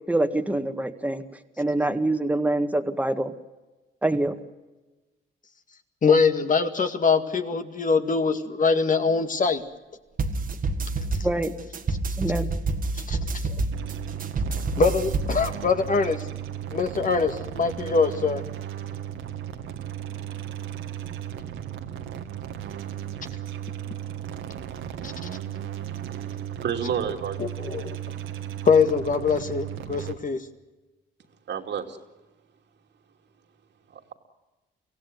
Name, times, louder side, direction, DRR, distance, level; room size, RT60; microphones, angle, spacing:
voice 1, 0.1-1.2 1.6-3.3 4.0-4.4 11.2-11.5 12.2-12.5, right 2 dB, 5° right, 7 dB, 1.9 m, -25 dB
voice 2, 6.0-9.6 13.1-13.2 14.8-16.2 16.7-18.4 25.0-25.3 27.4-28.0 28.6-30.4, left 5 dB, 40° left, 7 dB, 2.1 m, -23 dB
sound 1, 10.2-15.5, right 3 dB, 45° right, 1.9 m, -28 dB
sound 2, 13.7-30.1, right 10 dB, 80° right, 2.0 m, -35 dB
voice 3, 26.2-27.4 31.5-32.0 33.9-34.1, right 7 dB, 60° right, 4 dB, 2.7 m, -30 dB
24.5 x 16.5 x 9.6 m, 1.1 s
cardioid pair, 90°, 20 cm